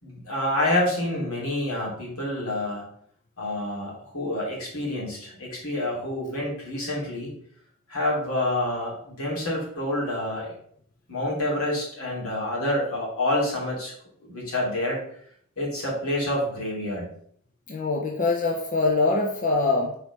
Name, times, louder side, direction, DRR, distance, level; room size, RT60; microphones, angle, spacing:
voice 1, 0.0-2.9 3.4-7.3 7.9-10.5 11.1-13.9 14.2-15.0 15.6-17.1, left 1 dB, 85° left, -4 dB, 3.0 m, -28 dB
voice 2, 17.7-20.0, left 3 dB, 40° left, 2 dB, 0.7 m, -23 dB
4.8 x 4.8 x 5.4 m, 0.63 s
head